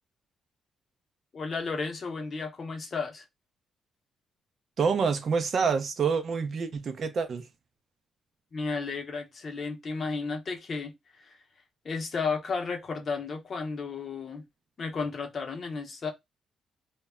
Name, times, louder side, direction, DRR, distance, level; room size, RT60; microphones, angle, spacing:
voice 1, 1.3-3.2 8.5-10.9 11.3-11.4 11.8-14.4 14.8-16.1, left 4 dB, 40° left, 0.7 m, -33 dB
voice 2, 4.8-7.5, right 5 dB, 45° right, 0.4 m, -27 dB
2.1 x 2.0 x 3.5 m
cardioid pair, 130°, 0 cm